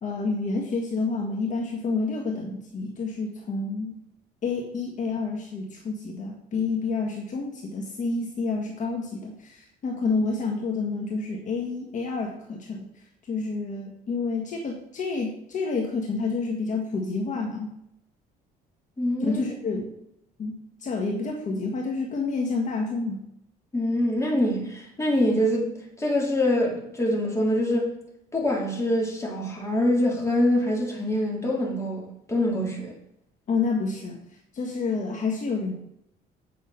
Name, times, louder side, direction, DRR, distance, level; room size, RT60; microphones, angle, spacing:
voice 1, 0.0-4.0 4.4-17.7 19.2-19.9 20.4-23.2 33.5-35.7, left 4 dB, 50° left, 1 dB, 1.6 m, -29 dB
voice 2, 19.0-19.4 19.8-19.9 23.7-27.9 28.3-32.0 32.3-32.9, left 1 dB, 15° left, -2 dB, 3.3 m, -24 dB
8.9 x 6.1 x 5.7 m, 0.76 s
cardioid pair, 110°, 17 cm